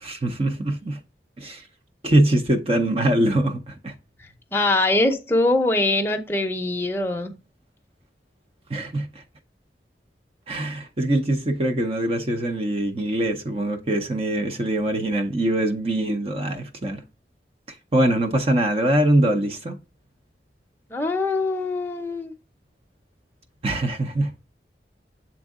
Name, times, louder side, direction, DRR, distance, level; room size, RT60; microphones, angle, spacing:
voice 1, 0.0-1.0 1.4-1.6 2.0-3.9 8.7-9.2 10.5-17.0 17.7-19.8 23.6-24.3, right 1 dB, 30° right, 0.6 m, -23 dB
voice 2, 4.5-7.3 20.9-22.3, left 2 dB, 15° left, 0.7 m, -23 dB
7.2 x 3.6 x 3.6 m
head